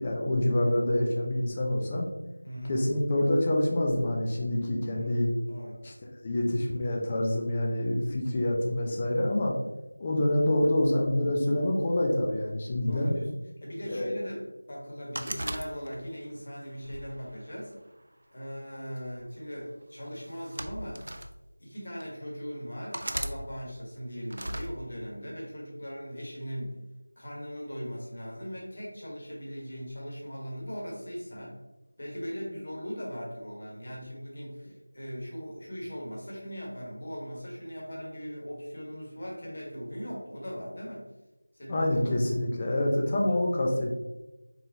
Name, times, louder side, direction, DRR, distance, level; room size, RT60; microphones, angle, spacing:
voice 1, 0.0-2.1 2.7-5.3 5.8-5.9 6.2-9.5 10.0-13.1 13.9-14.1 41.7-43.9, left 1 dB, 20° left, 0 dB, 0.5 m, -26 dB
voice 2, 2.4-2.8 4.9-5.1 5.5-5.8 12.9-17.7 18.3-21.0 21.6-26.8 27.2-31.5 32.0-41.0 41.5-41.9, equal, 35° left, -3 dB, 1.3 m, -39 dB
sound 1, 15.2-16.2 16.8-18.0 19.0-19.2 20.2-21.3 22.0-22.1 22.9-23.4 24.3-24.7, right 1 dB, 60° right, 0.4 m, -36 dB
4.0 x 3.7 x 2.8 m, 1.0 s
figure-of-eight pair, 175°, 0 cm